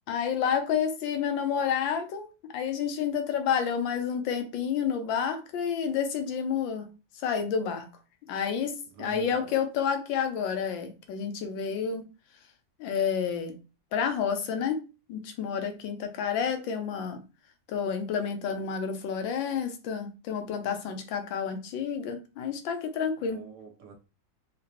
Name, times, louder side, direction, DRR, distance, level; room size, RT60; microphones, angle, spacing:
voice 1, 0.1-2.3 2.5-6.9 7.2-7.9 8.3-8.7 9.0-12.0 12.8-13.5 13.9-14.8 15.1-17.2 17.7-23.4, left 7 dB, 85° left, 1.4 m, -29 dB
voice 2, 8.9-9.6 23.2-23.9, right 6 dB, 65° right, 1.5 m, -46 dB
3.7 x 2.9 x 2.9 m
omnidirectional pair, 2.0 m